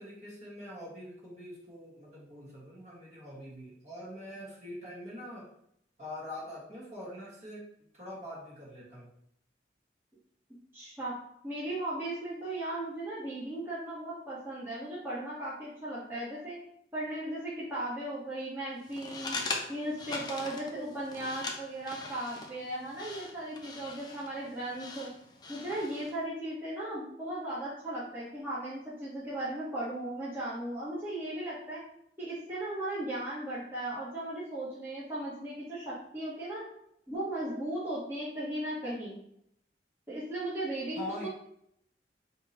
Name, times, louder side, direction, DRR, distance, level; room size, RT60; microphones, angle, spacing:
voice 1, 0.0-5.5 6.0-7.7 7.9-9.1 40.9-41.3, left 1 dB, 40° right, -6 dB, 1.4 m, -44 dB
voice 2, 10.7-11.1 11.4-16.6 16.9-19.4 19.7-25.1 25.5-31.8 32.2-36.6 37.1-39.2 40.1-41.3, right 1 dB, 15° right, -10 dB, 1.0 m, -37 dB
sound 1, 18.8-26.2, left 3 dB, 25° left, 0.4 m, -41 dB
3.5 x 2.7 x 4.1 m, 0.73 s
head